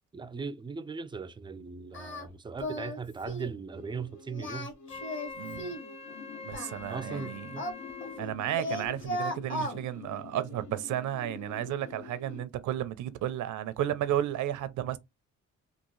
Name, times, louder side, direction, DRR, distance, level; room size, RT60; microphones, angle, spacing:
voice 1, 0.1-4.7 6.9-7.7, right 5 dB, 15° right, 0.4 m, -38 dB
Singing, 1.9-2.3 2.6-3.0 3.2-3.5 4.3-5.9 6.5-8.3 8.6-9.8, left 1 dB, 40° left, 1.3 m, -36 dB
sound 1, 3.7-12.4, left 5 dB, 70° left, 1.0 m, -47 dB
Wind instrument woodwind instrument, 4.9-8.3, left 4 dB, 20° left, 0.7 m, -44 dB
voice 2, 5.4-5.7 6.4-7.6 8.2-15.0, right 12 dB, 80° right, 0.6 m, -33 dB
3.6 x 2.4 x 3.1 m
cardioid pair, 90°, 30 cm